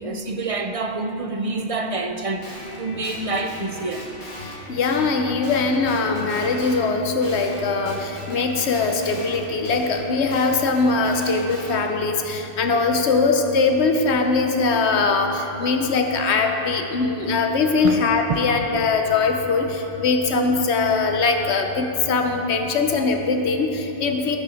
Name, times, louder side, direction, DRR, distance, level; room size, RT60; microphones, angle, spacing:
voice 1, 0.0-4.1 17.8-18.0 18.3-18.5, right 3 dB, 45° right, 0.5 m, -27 dB
Guitar, 2.4-6.9 7.2-11.8, left 1 dB, 45° left, 2.1 m, -39 dB
voice 2, 4.4-24.4, left 4 dB, 85° left, 1.1 m, -21 dB
14.5 x 5.8 x 6.3 m
omnidirectional pair, 1.1 m